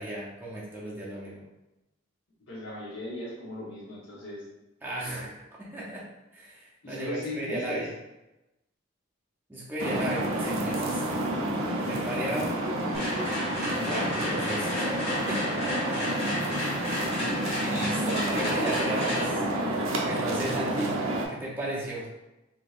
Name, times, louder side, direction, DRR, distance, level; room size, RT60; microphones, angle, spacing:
voice 1, 0.0-1.4 4.8-6.0 6.3-7.9 9.5-11.0 11.8-12.6 13.5-15.0 15.3-15.5 17.6-19.4 20.0-21.0 21.3-22.1, right 1 dB, 10° right, -5 dB, 0.5 m, -35 dB
voice 2, 2.5-4.4 6.8-7.9, left 1 dB, 70° left, -6 dB, 0.9 m, -37 dB
sound 1, 9.8-21.3, right 1 dB, 90° right, 0.6 m, -29 dB
sound 2, 12.9-20.9, left 1 dB, 25° left, 1.1 m, -34 dB
3.6 x 2.8 x 2.4 m, 0.99 s
head